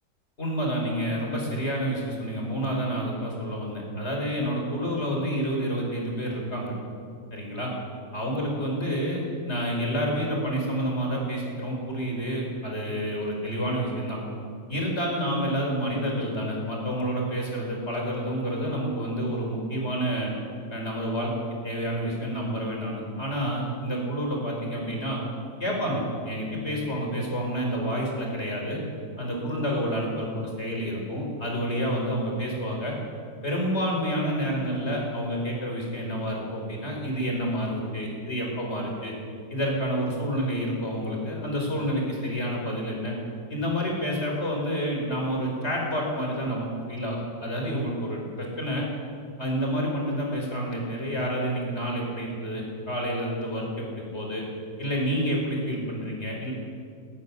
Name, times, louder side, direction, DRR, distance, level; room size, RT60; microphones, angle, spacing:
voice 1, 0.4-6.7 7.3-7.7 8.1-14.2 14.7-20.3 20.7-21.3 21.6-25.2 25.6-28.8 29.2-33.0 33.4-39.1 39.5-43.1 43.5-48.9 49.4-54.4 54.8-56.5, equal, 35° left, -1 dB, 5.4 m, -29 dB
18.0 x 14.5 x 10.0 m, 2.4 s
omnidirectional pair, 2.0 m